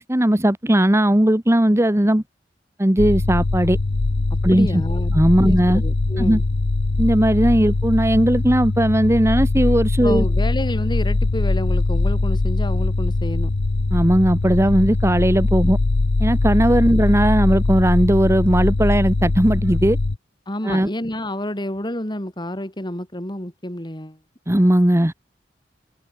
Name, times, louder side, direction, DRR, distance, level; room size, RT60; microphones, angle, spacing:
voice 1, 0.0-2.2 2.8-3.8 4.4-4.8 5.1-5.8 6.2-6.4 7.0-10.3 13.9-15.8 16.2-20.0 20.6-20.9 24.5-25.1, right 1 dB, 15° right, 1.3 m, -17 dB
sound 1, 3.0-20.2, left 2 dB, 75° left, 0.8 m, -21 dB
voice 2, 4.5-5.2 5.4-6.4 10.0-13.5 16.9-17.0 20.5-24.2, left 1 dB, 25° left, 4.1 m, -29 dB
head